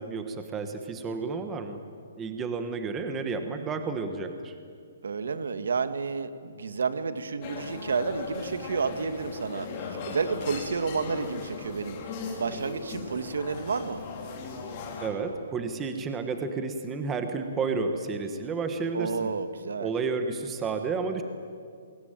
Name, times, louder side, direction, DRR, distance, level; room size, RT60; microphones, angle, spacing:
voice 1, 0.0-1.8 2.2-4.5 15.0-19.3 19.8-21.2, right 4 dB, 10° right, 7 dB, 1.3 m, -31 dB
voice 2, 5.0-12.0 12.4-14.0 18.9-19.9, right 5 dB, 80° right, 10 dB, 1.9 m, -30 dB
sound 1, 7.4-15.1, left 4 dB, 25° left, 3.6 m, -38 dB
28.5 x 23.0 x 9.2 m, 2.3 s
hypercardioid pair, 180°, 0 cm